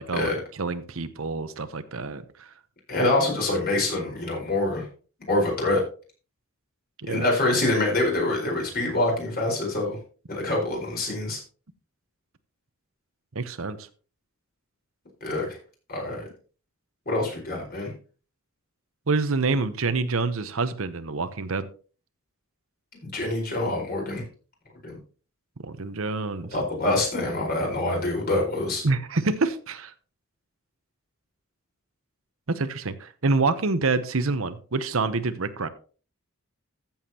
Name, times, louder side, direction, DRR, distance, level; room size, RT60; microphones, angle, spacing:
voice 1, 0.0-2.5 7.0-7.2 13.3-13.9 19.1-21.7 25.6-26.6 28.8-29.9 32.5-35.7, right 3 dB, 70° right, 11 dB, 0.9 m, -27 dB
voice 2, 2.9-4.9 5.3-5.8 7.1-10.0 10.3-11.4 15.2-15.6 15.9-16.2 17.1-17.9 23.1-24.2 24.8-25.0 26.5-28.8, left 2 dB, 45° left, 0 dB, 4.6 m, -25 dB
14.5 x 7.3 x 2.9 m, 0.38 s
head